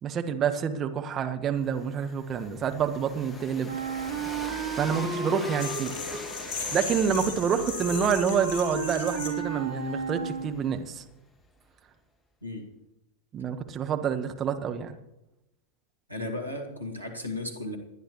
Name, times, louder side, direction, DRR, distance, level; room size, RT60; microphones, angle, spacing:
voice 1, 0.0-3.8 4.7-5.9 6.7-11.0 13.3-14.9, right 7 dB, 25° right, 6 dB, 1.3 m, -28 dB
Train, 1.5-11.4, left 2 dB, 15° left, 1.2 m, -44 dB
Wind instrument woodwind instrument, 3.7-10.7, right 4 dB, 65° right, 3.6 m, -34 dB
sound 1, 5.6-9.3, left 4 dB, 40° left, 3.6 m, -36 dB
voice 2, 16.1-17.8, left 2 dB, 90° right, 2 dB, 2.2 m, -35 dB
28.5 x 10.0 x 3.1 m, 0.92 s
figure-of-eight pair, 90°, 0 cm